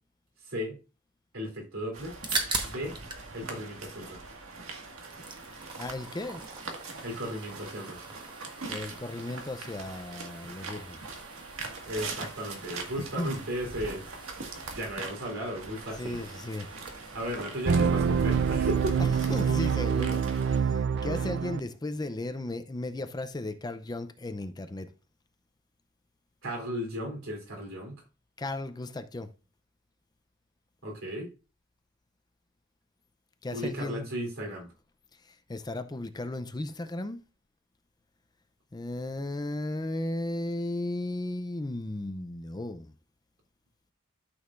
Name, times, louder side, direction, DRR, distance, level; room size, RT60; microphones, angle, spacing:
voice 1, 0.5-0.8 1.3-2.1 2.6-3.0 3.3-4.2 7.0-8.0 11.8-14.1 14.7-16.2 17.1-19.0 26.4-27.9 30.8-31.3 33.5-34.7, equal, 70° right, 3.5 m, -35 dB
sound 1, 1.9-20.6, right 3 dB, 90° right, 1.7 m, -42 dB
sound 2, 2.2-3.3 3.6-4.6 4.9-20.4, right 3 dB, 20° right, 1.2 m, -42 dB
voice 2, 5.7-6.4 8.7-11.0 13.0-13.4 14.5-14.6 16.0-16.7 19.0-24.9 28.4-29.3 33.4-34.0 35.1-37.2 38.7-42.9, left 2 dB, 20° left, 0.5 m, -35 dB
sound 3, 17.6-21.6, right 6 dB, 55° right, 0.4 m, -26 dB
12.5 x 6.4 x 2.5 m
head